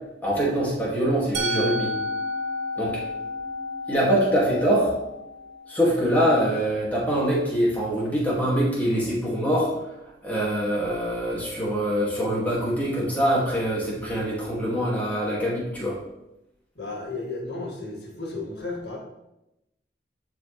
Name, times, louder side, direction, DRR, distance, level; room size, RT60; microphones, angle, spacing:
voice 1, 0.2-1.9 2.8-3.0 3.9-4.9 5.7-9.9 10.2-16.0, equal, 10° left, -6 dB, 2.2 m, -24 dB
Musical instrument, 1.3-7.2, left 1 dB, 75° right, 1.5 m, -32 dB
voice 2, 16.8-19.0, left 3 dB, 75° left, -2 dB, 2.0 m, -33 dB
11.0 x 4.7 x 3.3 m, 0.89 s
head